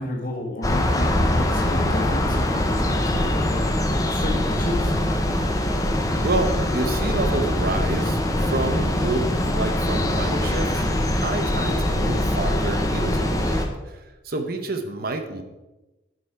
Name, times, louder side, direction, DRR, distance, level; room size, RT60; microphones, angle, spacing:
voice 1, 0.0-3.7 4.1-5.0, left 1 dB, 45° left, -1 dB, 1.6 m, -31 dB
sound 1, 0.6-13.7, left 1 dB, 15° left, 0.7 m, -23 dB
voice 2, 6.2-15.4, right 2 dB, 50° right, 7 dB, 0.8 m, -29 dB
9.5 x 5.4 x 4.6 m, 1.1 s
head